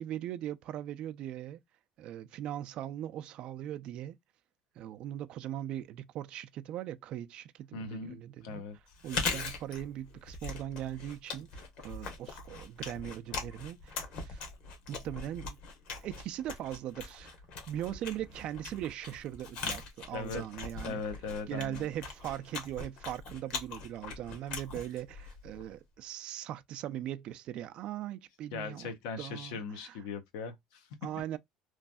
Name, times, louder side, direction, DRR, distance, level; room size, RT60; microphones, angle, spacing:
voice 1, 0.0-1.6 2.0-4.2 4.8-8.6 9.0-14.4 14.9-15.6 15.9-17.4 17.7-21.0 21.5-28.9 29.2-30.0 31.0-31.4, right 12 dB, 50° right, 0.4 m, -40 dB
voice 2, 7.7-8.2 8.4-8.8 20.1-20.4 20.8-21.9 28.5-30.9, left 4 dB, 90° left, 0.9 m, -39 dB
Chewing mastication, 8.9-25.8, left 4 dB, 55° left, 1.2 m, -41 dB
3.1 x 2.6 x 2.2 m
cardioid pair, 140°, 2 cm